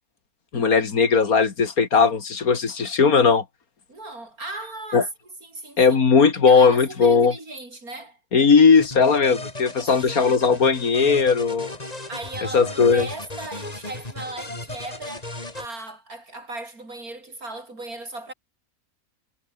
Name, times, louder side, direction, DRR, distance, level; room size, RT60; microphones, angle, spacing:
voice 1, 0.5-3.4 4.9-5.0 5.8-7.3 8.3-11.7 12.5-13.1, left 5 dB, 75° left, 2.6 m, -18 dB
voice 2, 3.9-5.1 5.4-6.0 6.5-8.2 9.7-10.4 12.1-15.3 15.5-18.3, right 2 dB, 80° right, 6.7 m, -37 dB
sound 1, 8.8-15.7, left 2 dB, 25° left, 3.3 m, -36 dB
omnidirectional pair, 1.5 m